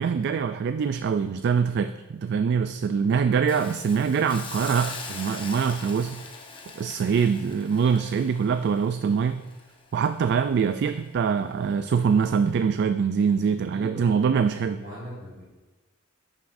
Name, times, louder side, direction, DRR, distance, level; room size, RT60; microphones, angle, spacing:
voice 1, 0.0-6.2 6.8-9.5 9.9-14.8, right 6 dB, 55° right, 10 dB, 0.3 m, -24 dB
Hiss, 3.5-10.5 10.9-11.1, left 4 dB, 25° left, 0.9 m, -41 dB
voice 2, 13.7-14.2 14.4-15.4, equal, 40° right, -9 dB, 2.3 m, -40 dB
10.5 x 7.3 x 2.6 m, 1.2 s
head